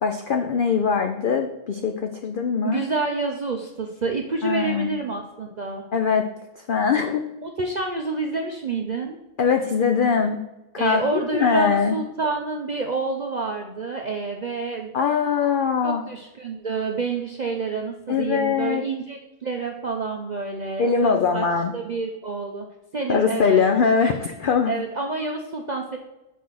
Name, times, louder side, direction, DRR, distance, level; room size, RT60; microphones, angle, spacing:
voice 1, 0.0-2.8 4.4-4.9 5.9-6.3 6.7-7.3 9.4-10.4 10.7-12.0 14.9-16.0 18.1-18.8 20.8-21.7 23.1-24.7, left 6 dB, 70° left, 4 dB, 0.5 m, -22 dB
voice 2, 2.6-5.8 7.4-9.2 10.8-14.9 15.8-21.4 21.7-22.7 22.9-23.6 24.7-26.0, right 3 dB, 55° right, 2 dB, 0.4 m, -28 dB
5.6 x 4.1 x 6.2 m, 0.97 s
omnidirectional pair, 1.5 m